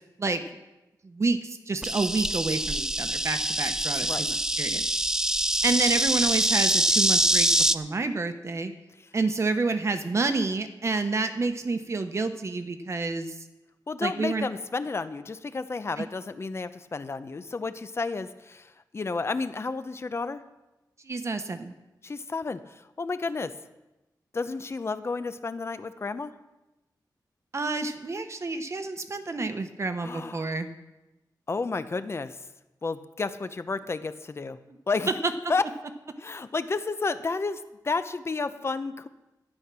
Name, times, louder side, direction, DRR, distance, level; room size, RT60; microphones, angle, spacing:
voice 1, 1.0-4.9 5.6-7.5 7.7-8.7 9.1-13.3 14.0-14.5 16.0-16.1 21.0-21.7 27.5-30.7 35.2-35.3, right 3 dB, 40° right, 8 dB, 1.0 m, -29 dB
Insect, 1.8-7.8, right 1 dB, 10° right, 0.4 m, -24 dB
voice 2, 13.9-20.4 22.0-23.5 24.3-26.3 30.0-30.5 31.5-32.4 32.8-34.6 34.9-35.1 35.5-35.6 36.2-39.1, left 4 dB, 35° left, 12 dB, 0.7 m, -31 dB
12.5 x 10.0 x 6.1 m, 1.0 s
wide cardioid pair, 145°, 7 cm